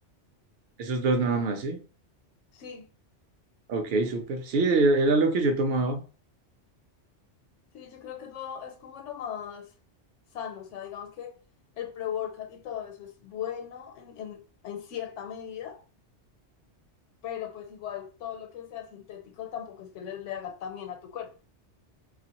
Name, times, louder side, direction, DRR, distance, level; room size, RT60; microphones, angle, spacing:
voice 1, 0.8-1.8 3.7-6.0, right 3 dB, 65° right, 0.7 m, -24 dB
voice 2, 2.5-2.8 7.7-9.7 10.3-11.3 11.8-15.8 17.2-21.3, left 9 dB, 85° left, 1.0 m, -38 dB
2.9 x 2.4 x 2.8 m
omnidirectional pair, 1.2 m